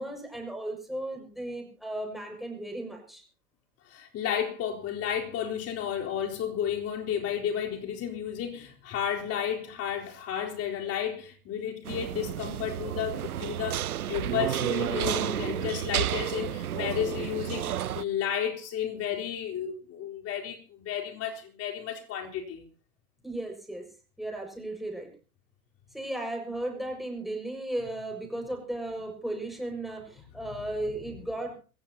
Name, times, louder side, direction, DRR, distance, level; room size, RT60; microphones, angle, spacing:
voice 1, 0.0-3.2 23.2-23.9 24.2-25.1 25.9-31.6, right 1 dB, ahead, 6.0 m, -35 dB
voice 2, 3.9-22.7, left 9 dB, 35° left, 4.1 m, -32 dB
sound 1, 11.8-18.0, right 11 dB, 85° right, 0.7 m, -31 dB
27.0 x 15.0 x 2.9 m
hypercardioid pair, 100°, 43 cm